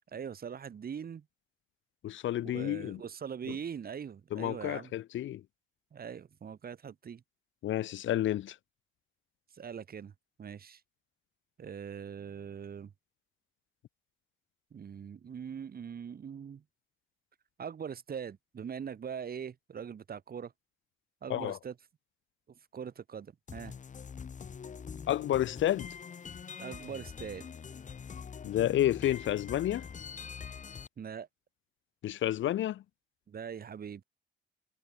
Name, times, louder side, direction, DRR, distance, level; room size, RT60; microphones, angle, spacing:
voice 1, 0.1-1.2 2.4-4.9 5.9-7.2 9.5-10.1 10.4-10.8 11.6-12.9 14.7-16.6 17.6-20.5 21.2-21.7 22.7-23.7 26.6-27.5 31.0-31.3 33.3-34.0, right 7 dB, 50° right, 3.9 m, -42 dB
voice 2, 2.0-3.0 3.5-3.6 4.3-5.4 7.6-8.6 21.3-21.6 25.1-26.0 28.4-29.9 32.0-32.8, left 12 dB, 75° left, 2.1 m, -30 dB
sound 1, 23.5-30.9, left 6 dB, 40° left, 1.4 m, -44 dB
cardioid pair, 90°, 20 cm